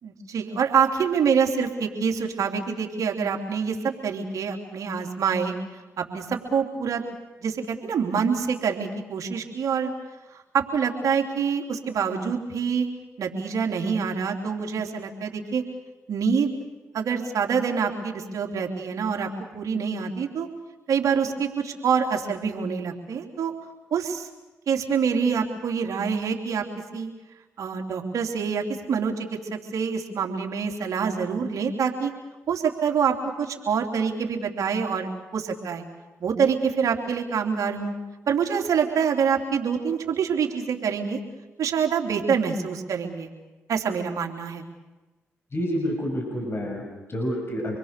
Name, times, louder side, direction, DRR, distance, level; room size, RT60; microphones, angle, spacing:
voice 1, 0.0-5.5 6.0-7.0 7.4-9.9 10.5-12.9 13.2-15.6 16.1-16.5 16.9-20.5 20.9-23.5 23.9-24.3 24.7-26.6 26.9-27.1 27.6-32.1 32.5-35.8 36.2-37.9 38.3-41.2 41.6-43.3 43.7-44.6, right 6 dB, 65° right, 2 dB, 3.4 m, -26 dB
voice 2, 45.5-47.8, equal, 40° left, 1 dB, 6.7 m, -28 dB
27.0 x 22.0 x 6.8 m, 1.2 s
supercardioid pair, 50°, 6 cm